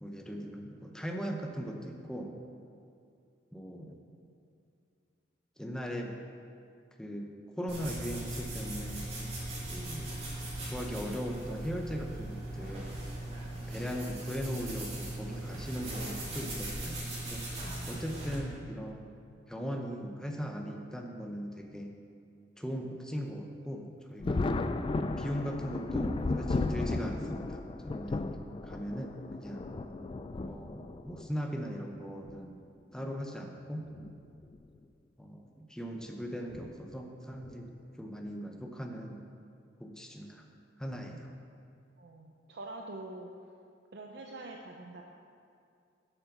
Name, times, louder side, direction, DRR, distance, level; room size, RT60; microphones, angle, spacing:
voice 1, 0.0-2.4 3.5-4.0 5.6-6.2 7.0-9.1 9.7-10.2 10.7-12.9 13.7-17.0 17.3-17.4 17.9-19.1 19.5-22.0 22.6-24.5 25.2-28.3 28.6-29.7 30.5-32.6 32.9-33.9 35.2-37.7 38.0-39.3 39.8-40.5 40.8-41.3, equal, 5° left, 2 dB, 0.7 m, -39 dB
sound 1, 7.7-18.4, right 1 dB, 35° right, 2.3 m, -39 dB
Thunder, 24.2-31.3 32.3-32.4 33.8-34.1 34.5-34.6 36.5-36.7 37.4-37.8, left 2 dB, 30° left, 0.3 m, -34 dB
voice 2, 42.0-43.3 43.9-45.0, right 2 dB, 65° right, 1 dB, 0.6 m, -44 dB
9.5 x 6.8 x 6.0 m, 2.4 s
head